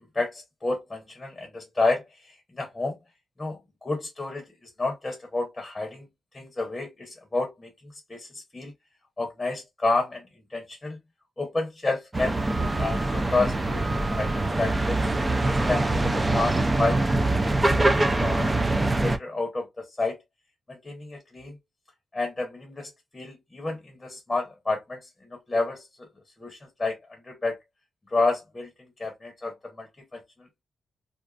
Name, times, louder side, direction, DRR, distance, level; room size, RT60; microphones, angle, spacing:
voice 1, 0.1-3.0 3.4-6.1 6.3-8.7 9.2-11.0 11.4-12.4 12.7-15.1 15.6-17.4 17.8-20.2 20.7-21.6 22.1-26.1 26.4-27.6 28.1-30.6, left 3 dB, 15° left, 0.8 m, -30 dB
sound 1, 12.1-19.2, right 2 dB, 15° right, 0.3 m, -24 dB
2.4 x 2.4 x 2.3 m
wide cardioid pair, 125°, 0 cm